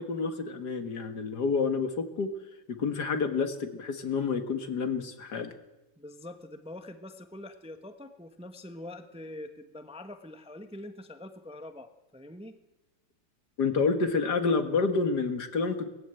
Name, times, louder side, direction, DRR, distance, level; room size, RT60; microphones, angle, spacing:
voice 1, 0.0-2.3 2.7-5.5 13.6-15.9, left 4 dB, 65° left, 9 dB, 2.2 m, -29 dB
voice 2, 6.0-12.6, left 1 dB, 5° right, 8 dB, 1.0 m, -44 dB
20.0 x 15.0 x 9.0 m, 1.0 s
omnidirectional pair, 1.9 m